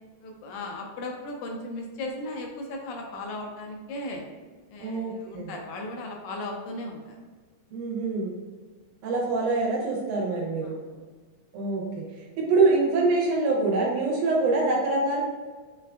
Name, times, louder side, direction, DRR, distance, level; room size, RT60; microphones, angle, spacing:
voice 1, 0.2-4.2 4.7-7.2 10.6-11.0, left 2 dB, 80° left, 1 dB, 1.9 m, -36 dB
voice 2, 4.8-5.5 7.7-8.4 9.0-10.8 11.5-15.2, right 3 dB, 85° right, -2 dB, 2.3 m, -25 dB
5.3 x 2.4 x 2.2 m, 1.4 s
omnidirectional pair, 3.5 m